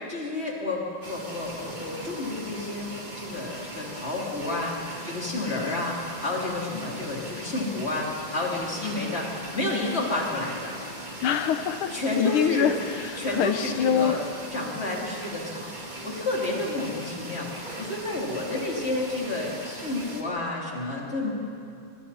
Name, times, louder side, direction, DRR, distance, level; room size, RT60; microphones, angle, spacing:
voice 1, 0.1-10.7 11.9-12.7 13.2-14.2 14.5-21.3, left 2 dB, 30° left, -3 dB, 3.9 m, -30 dB
sound 1, 1.0-20.2, right 1 dB, 20° right, 2.4 m, -39 dB
voice 2, 11.2-14.2, left 8 dB, 85° left, 8 dB, 1.7 m, -25 dB
26.0 x 25.0 x 4.4 m, 2.6 s
omnidirectional pair, 2.3 m